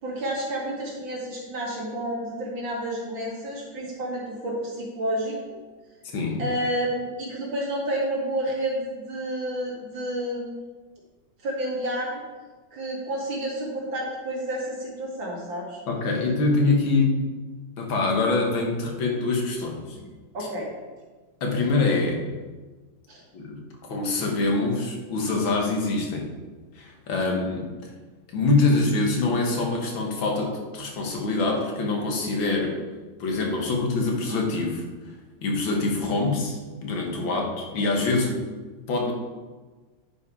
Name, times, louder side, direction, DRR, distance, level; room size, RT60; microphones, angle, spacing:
voice 1, 0.0-5.4 6.4-10.6 11.4-12.2 12.7-15.8 19.9-20.1 20.3-20.7 23.1-23.2 27.2-27.5 37.2-37.3, right 1 dB, 80° right, -5 dB, 3.1 m, -30 dB
voice 2, 6.1-6.4 15.9-17.1 17.8-20.0 20.4-20.5 21.4-22.2 23.3-23.6 23.9-26.3 26.8-27.9 28.3-32.8 33.2-34.8 35.4-38.5 38.9-39.1, left 3 dB, 85° left, 1 dB, 2.2 m, -24 dB
10.0 x 5.6 x 4.8 m, 1.3 s
omnidirectional pair, 2.1 m